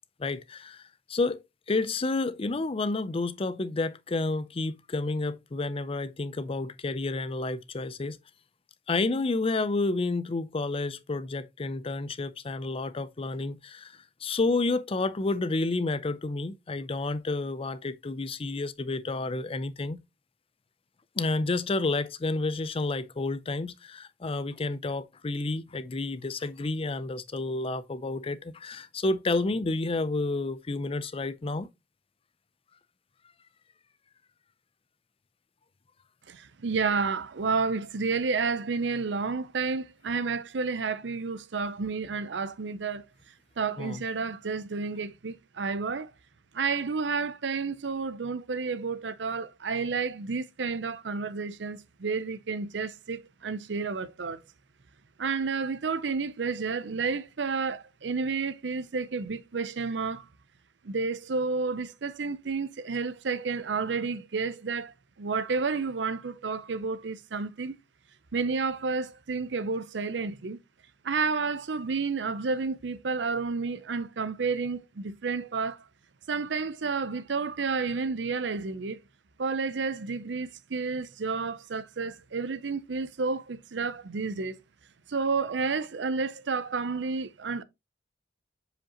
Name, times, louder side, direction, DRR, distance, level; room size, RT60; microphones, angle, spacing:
voice 1, 0.2-0.8 1.1-1.4 1.7-8.2 8.9-13.9 14.2-20.0 21.2-31.7 43.8-44.0, left 3 dB, 30° left, 0.5 m, -30 dB
voice 2, 36.3-43.0 43.6-46.1 46.5-54.4 55.2-60.2 60.8-67.7 68.3-70.6 71.0-75.8 76.3-79.0 79.4-84.5 85.1-87.6, right 4 dB, 85° right, 0.6 m, -31 dB
7.3 x 5.0 x 2.9 m
head